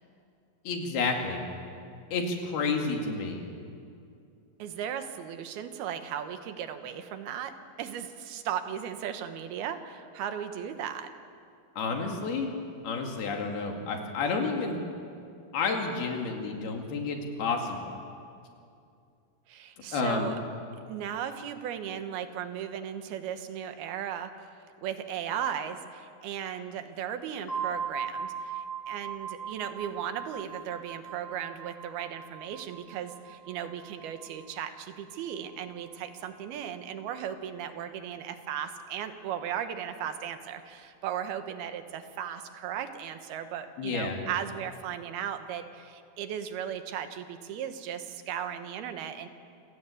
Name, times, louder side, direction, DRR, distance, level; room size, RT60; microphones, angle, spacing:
voice 1, 0.7-1.4 2.1-3.4 11.8-12.5 12.8-14.8 15.5-18.0 19.9-20.4 43.8-44.2, left 4 dB, 85° left, 2 dB, 4.3 m, -30 dB
voice 2, 4.6-7.5 7.8-11.1 19.5-20.4 20.9-24.3 24.8-49.3, right 9 dB, 85° right, 8 dB, 3.2 m, -36 dB
sound 1, 27.5-37.1, right 6 dB, 65° left, 0.7 m, -40 dB
28.0 x 16.5 x 8.5 m, 2.5 s
omnidirectional pair, 4.3 m